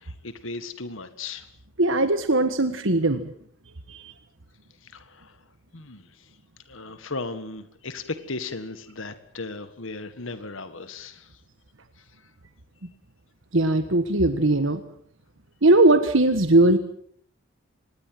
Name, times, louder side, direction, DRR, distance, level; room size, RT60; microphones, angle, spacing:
voice 1, 0.0-1.5 4.8-5.4 5.7-6.3 6.7-11.4 12.0-12.3, left 3 dB, 70° left, 11 dB, 1.7 m, -37 dB
voice 2, 1.8-3.3 3.9-4.1 13.5-14.8 15.6-16.8, right 2 dB, 65° right, 9 dB, 1.5 m, -19 dB
25.5 x 20.5 x 7.8 m, 0.66 s
head